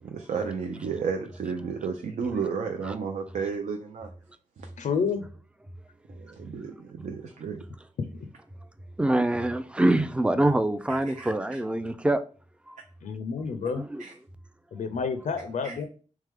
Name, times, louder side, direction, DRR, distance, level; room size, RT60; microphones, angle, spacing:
voice 1, 0.0-4.1 4.6-4.7 6.1-7.6 10.9-11.3 14.0-14.1 15.6-15.8, right 6 dB, 75° right, 0.5 m, -33 dB
voice 2, 4.8-5.3 8.0-8.2 13.0-13.8 14.7-15.8, left 5 dB, 80° left, 0.5 m, -29 dB
voice 3, 9.0-12.2 12.7-12.8 13.7-14.0, right 1 dB, 10° right, 0.3 m, -25 dB
3.4 x 3.2 x 3.4 m
wide cardioid pair, 120°, 13 cm